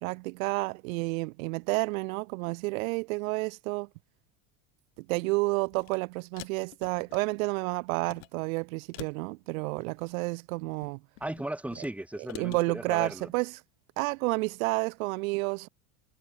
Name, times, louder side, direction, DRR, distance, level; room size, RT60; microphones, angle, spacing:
voice 1, 0.0-3.9 5.1-11.0 12.4-13.5 14.0-15.7, right 26 dB, 80° right, 1.2 m, -30 dB
sound 1, 5.7-6.0 6.4-7.5 7.9-8.3 8.9-10.1 10.6-11.9 12.3-12.7, left 27 dB, 75° left, 4.1 m, -47 dB
voice 2, 11.2-13.3, right 1 dB, 5° right, 4.6 m, -36 dB
cardioid pair, 170°, 41 cm